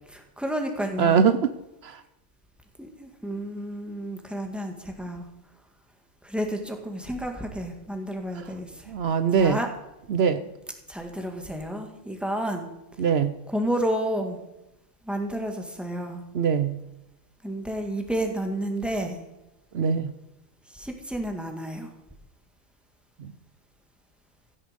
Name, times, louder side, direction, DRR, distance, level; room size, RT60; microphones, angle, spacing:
voice 1, 0.1-1.3 2.8-5.3 6.2-9.7 10.9-12.7 13.5-14.4 15.1-16.2 17.4-19.2 20.7-21.9, right 1 dB, ahead, 3 dB, 2.0 m, -31 dB
voice 2, 1.0-1.5 1.8-2.0 8.9-9.6 10.1-10.4 13.0-13.3 16.3-16.7 19.7-20.1, right 6 dB, 70° right, 11 dB, 0.9 m, -22 dB
15.5 x 10.0 x 5.3 m, 0.93 s
omnidirectional pair, 1.1 m